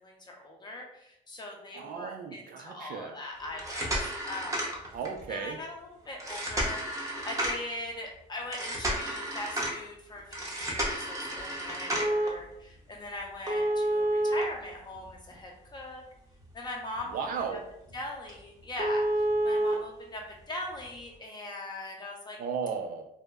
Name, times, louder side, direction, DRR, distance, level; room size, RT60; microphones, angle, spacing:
voice 1, 0.0-4.0 4.2-4.7 5.3-6.8 7.2-16.0 16.5-17.6 17.9-22.4, left 1 dB, 25° left, 0 dB, 0.6 m, -40 dB
voice 2, 1.7-3.2 4.9-5.6 17.1-17.6 22.4-23.1, right 6 dB, 55° right, 5 dB, 0.4 m, -35 dB
sound 1, 3.5-5.2 6.2-7.7 8.5-9.8 10.3-12.3 13.5-15.3 15.8-15.9 16.4-16.5 17.0-17.1 17.4-17.5 17.9-18.0 18.3-18.4 18.8-19.7 20.8-20.9, right 1 dB, 20° right, 0.6 m, -30 dB
2.1 x 2.0 x 3.4 m, 0.77 s
cardioid pair, 110°, 17 cm